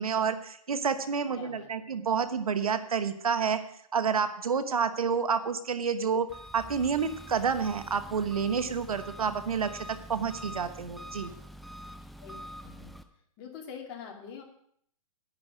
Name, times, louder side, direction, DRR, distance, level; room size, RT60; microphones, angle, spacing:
voice 1, 0.0-3.6 3.9-6.3 6.5-11.3, right 6 dB, 85° right, 11 dB, 1.1 m, -29 dB
voice 2, 1.3-1.7 12.2-12.3 12.6-12.9 13.4-14.4, left 7 dB, 30° left, 1 dB, 2.5 m, -44 dB
Engine, 6.3-13.0, equal, ahead, 0.3 m, -45 dB
10.5 x 9.9 x 5.1 m, 0.65 s
hypercardioid pair, 140°, 18 cm